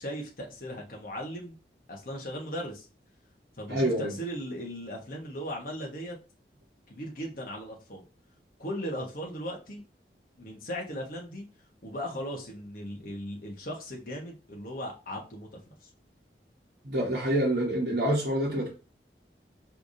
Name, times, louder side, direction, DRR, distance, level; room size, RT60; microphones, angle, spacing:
voice 1, 0.0-1.6 1.9-2.9 3.6-6.2 6.9-8.0 8.6-9.8 10.4-11.4 11.8-15.9, equal, 50° left, 0 dB, 1.1 m, -37 dB
voice 2, 3.7-4.1 16.8-18.7, right 1 dB, 55° right, -5 dB, 1.2 m, -27 dB
4.9 x 3.4 x 2.7 m, 0.32 s
head